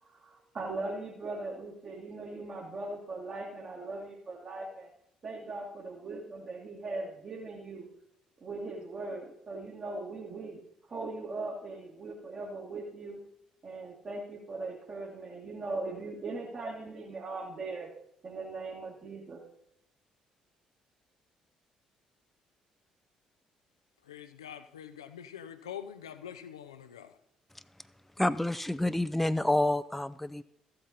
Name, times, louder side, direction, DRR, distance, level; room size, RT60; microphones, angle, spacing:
voice 1, 0.0-4.9 5.2-7.9 8.4-10.6 10.9-13.2 13.6-17.9 18.2-19.5, right 3 dB, 40° right, -3 dB, 1.9 m, -39 dB
voice 2, 24.1-27.1, left 9 dB, 80° left, 10 dB, 0.5 m, -45 dB
voice 3, 28.2-30.4, left 1 dB, 5° left, 15 dB, 0.4 m, -28 dB
14.0 x 7.8 x 4.1 m, 0.74 s
figure-of-eight pair, 45°, 3 cm